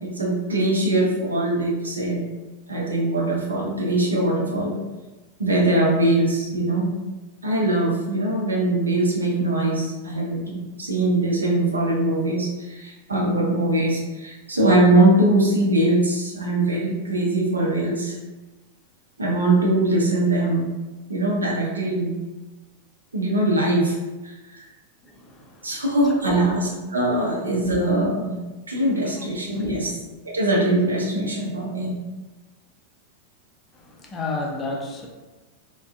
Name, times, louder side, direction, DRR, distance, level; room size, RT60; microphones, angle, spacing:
voice 1, 0.0-2.2 2.7-4.8 5.4-6.9 7.4-18.1 19.2-20.7 21.1-22.1 23.1-24.0 24.2-24.6 25.6-28.4 28.7-29.9 30.2-32.0, right 1 dB, 75° right, -2 dB, 0.6 m, -22 dB
voice 2, 25.0-26.6 29.0-29.9 33.7-35.1, left 2 dB, 20° left, 0 dB, 0.5 m, -33 dB
3.4 x 2.2 x 2.4 m, 1.1 s
figure-of-eight pair, 90°, 0 cm